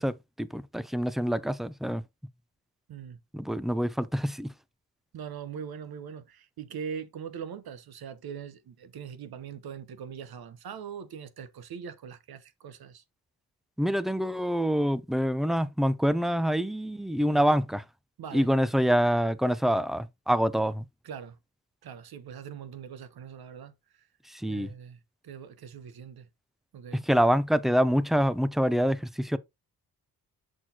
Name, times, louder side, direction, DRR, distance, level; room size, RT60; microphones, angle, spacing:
voice 1, 0.0-2.0 3.3-4.5 13.8-17.8 18.3-20.9 24.3-24.7 26.9-29.4, equal, ahead, 0.5 m, -26 dB
voice 2, 2.9-3.2 5.1-13.0 17.3-17.4 18.2-18.5 21.0-21.4 21.8-24.1 24.5-26.3 26.7-27.0, right 7 dB, 70° right, 1.0 m, -41 dB
6.3 x 6.1 x 2.8 m
cardioid pair, 85°, 39 cm